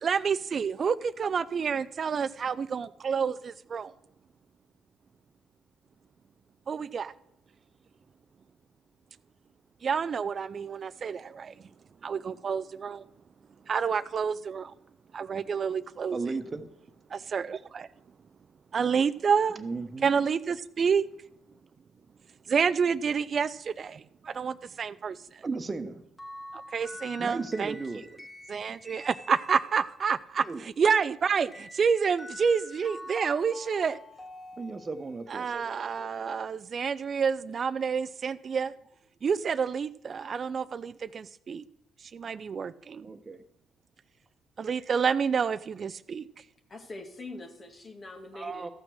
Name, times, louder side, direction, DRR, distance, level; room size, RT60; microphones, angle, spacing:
voice 1, 0.0-3.9 6.7-7.1 9.8-11.5 12.0-13.0 13.7-14.7 15.1-16.2 17.1-17.9 18.7-19.6 20.0-21.1 22.5-25.2 26.7-27.7 28.5-30.4 30.8-34.0 35.3-38.7 39.2-41.6 42.1-43.1 44.6-46.3, right 6 dB, 50° right, 0.5 m, -28 dB
voice 2, 16.1-16.7 19.5-20.1 25.4-26.0 27.2-28.1 30.4-30.6 34.6-35.5 43.0-43.4 48.3-48.7, right 3 dB, 35° right, 1.2 m, -35 dB
sound 1, 26.2-29.9 31.5-35.3, left 2 dB, 15° left, 2.7 m, -46 dB
voice 3, 46.7-48.7, left 2 dB, 40° left, 2.1 m, -43 dB
14.0 x 6.0 x 6.4 m
hypercardioid pair, 55°, 0 cm